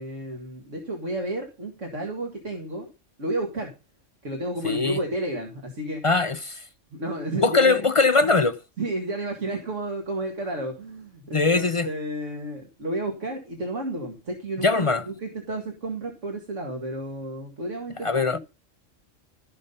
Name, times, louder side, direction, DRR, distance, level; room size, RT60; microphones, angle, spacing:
voice 1, 0.0-2.9 3.2-3.7 4.2-6.0 6.9-7.8 8.2-8.3 8.8-18.4, right 1 dB, 75° right, 2.2 m, -32 dB
voice 2, 4.6-5.0 6.0-6.6 7.3-8.6 11.3-11.9 14.6-15.0 18.0-18.4, left 3 dB, 45° left, 0.4 m, -21 dB
13.5 x 5.6 x 5.4 m
omnidirectional pair, 1.3 m